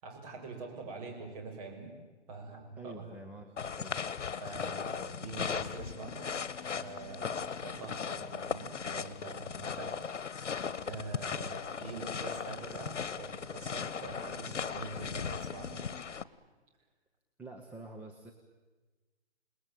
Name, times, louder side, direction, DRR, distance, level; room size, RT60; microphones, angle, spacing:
voice 1, 0.0-1.9 2.3-3.1 4.4-6.3 6.8-10.5 10.8-15.8, right 3 dB, 30° right, 2 dB, 6.5 m, -45 dB
voice 2, 2.8-4.0 17.4-18.3, right 2 dB, 5° right, 0 dB, 1.0 m, -47 dB
sound 1, 3.6-16.2, left 6 dB, 80° left, 1.4 m, -38 dB
29.0 x 20.0 x 9.2 m, 1.3 s
hypercardioid pair, 155°, 35 cm